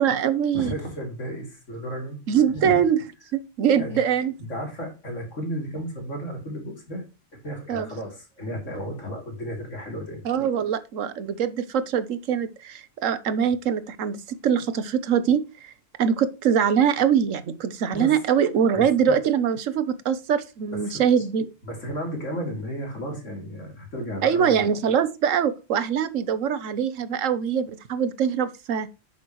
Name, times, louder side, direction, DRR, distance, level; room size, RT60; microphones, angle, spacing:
voice 1, 0.0-0.7 2.3-3.0 3.3-4.3 7.7-7.9 10.2-15.7 16.0-21.5 24.2-28.9, right 8 dB, 90° right, 1.2 m, -23 dB
voice 2, 0.5-2.2 2.5-2.8 3.7-4.0 4.4-10.2 17.9-18.2 18.7-18.9 20.7-21.1 21.6-24.6, equal, 75° left, 3.4 m, -33 dB
9.3 x 7.0 x 3.1 m
omnidirectional pair, 1.3 m